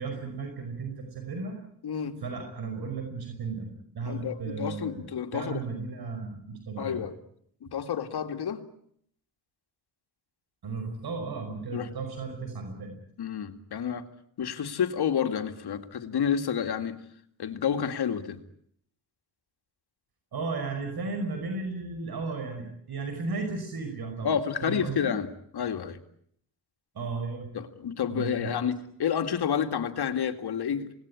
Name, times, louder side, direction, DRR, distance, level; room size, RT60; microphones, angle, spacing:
voice 1, 0.0-1.6 2.2-7.0 10.6-13.0 20.3-24.3 24.6-25.1 26.9-27.5 28.1-28.5, right 4 dB, 70° right, 5 dB, 5.5 m, -35 dB
voice 2, 1.8-2.2 4.1-5.6 6.8-7.2 7.6-8.7 11.7-11.9 13.2-14.1 14.4-17.0 17.4-18.4 24.2-26.0 27.5-30.9, left 8 dB, 75° left, 7 dB, 2.4 m, -30 dB
26.5 x 19.5 x 9.9 m, 0.70 s
cardioid pair, 80°, 39 cm